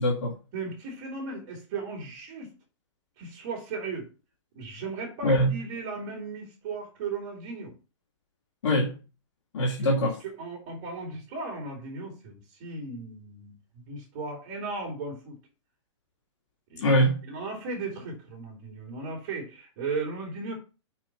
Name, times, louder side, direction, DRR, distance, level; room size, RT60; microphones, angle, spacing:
voice 1, 0.0-0.4 5.2-5.6 8.6-9.0 9.5-10.2 16.8-17.2, equal, 75° left, 2.2 m, -23 dB
voice 2, 0.5-2.5 3.2-4.1 4.5-7.7 10.4-15.4 16.7-17.0 17.3-20.6, right 4 dB, 35° right, 2.5 m, -36 dB
5.7 x 4.7 x 5.9 m
hypercardioid pair, 170°, 15 cm